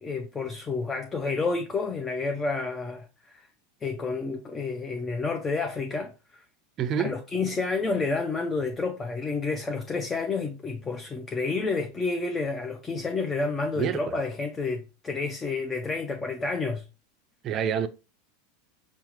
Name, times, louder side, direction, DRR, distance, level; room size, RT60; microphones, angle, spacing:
voice 1, 0.0-3.5 3.8-6.4 7.0-16.9, left 4 dB, 20° left, 0.5 m, -30 dB
voice 2, 6.8-7.2 13.8-14.2 17.4-17.9, right 8 dB, 35° right, 0.4 m, -27 dB
5.6 x 2.0 x 3.0 m
figure-of-eight pair, 80°, 0 cm